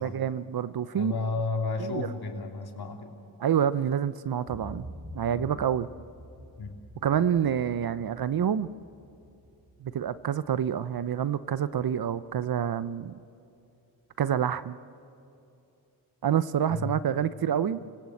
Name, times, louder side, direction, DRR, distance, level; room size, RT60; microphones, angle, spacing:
voice 1, 0.0-1.1 1.8-2.1 3.4-4.9 5.1-5.9 7.0-8.7 9.8-13.2 14.2-14.8 16.2-17.8, right 9 dB, 55° right, 15 dB, 0.8 m, -27 dB
voice 2, 0.9-3.1 5.3-5.5 6.6-6.8 16.7-16.9, left 3 dB, 55° left, 3 dB, 3.2 m, -32 dB
sound 1, 4.4-12.3 12.8-12.9, equal, 10° right, 5.7 m, -48 dB
30.0 x 17.5 x 7.9 m, 2.6 s
supercardioid pair, 50°, 45 cm